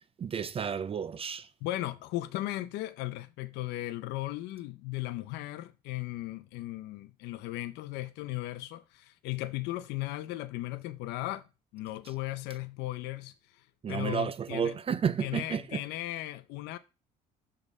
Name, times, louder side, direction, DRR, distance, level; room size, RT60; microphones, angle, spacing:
voice 1, 0.0-1.5 13.8-15.8, right 7 dB, 35° right, 0.5 m, -32 dB
voice 2, 1.6-11.4 11.7-14.7 15.2-16.8, left 16 dB, 90° left, 0.6 m, -36 dB
6.6 x 5.3 x 5.3 m
cardioid pair, 110°, 17 cm